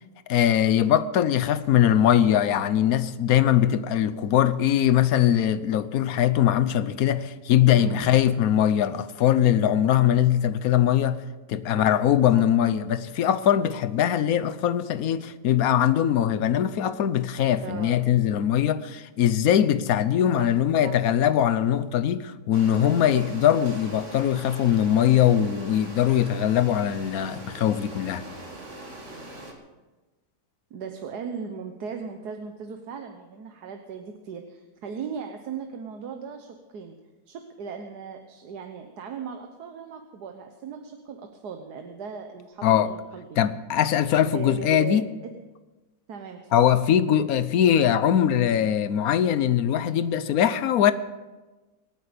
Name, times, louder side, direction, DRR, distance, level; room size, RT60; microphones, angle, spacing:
voice 1, 0.3-11.2 11.5-28.2 42.6-42.9 43.4-45.1 46.5-50.9, left 10 dB, 65° left, 1.1 m, -21 dB
voice 2, 7.7-8.2 11.8-12.0 12.3-12.5 17.6-18.0 20.4-21.4 30.7-37.0 37.3-43.5 44.3-45.3 46.1-46.6, right 6 dB, 75° right, 1.6 m, -38 dB
sound 1, 22.5-29.5, right 1 dB, 45° right, 2.2 m, -41 dB
26.0 x 8.9 x 5.2 m
omnidirectional pair, 1.8 m